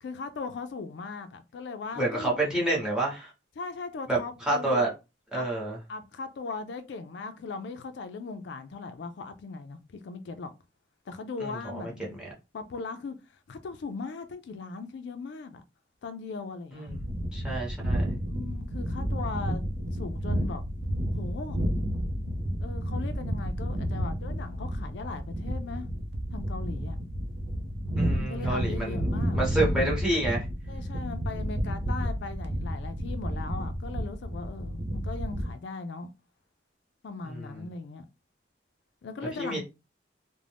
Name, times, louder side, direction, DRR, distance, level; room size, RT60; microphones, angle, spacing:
voice 1, 0.0-2.5 3.6-4.9 5.4-5.5 5.9-10.5 11.1-12.2 12.5-15.6 16.0-16.9 18.3-19.6 19.9-20.6 21.1-21.6 22.6-25.9 26.3-27.0 28.1-29.4 30.7-36.1 37.0-38.1 39.0-39.6, left 4 dB, 70° left, 0.4 m, -39 dB
voice 2, 1.9-3.3 4.1-4.9 5.3-5.8 11.4-11.6 16.7-18.2 28.0-29.1 29.3-30.5 37.2-37.6 39.4-39.6, right 1 dB, 5° right, 1.0 m, -29 dB
sound 1, 16.9-35.5, equal, 65° right, 0.5 m, -31 dB
2.5 x 2.0 x 3.3 m
head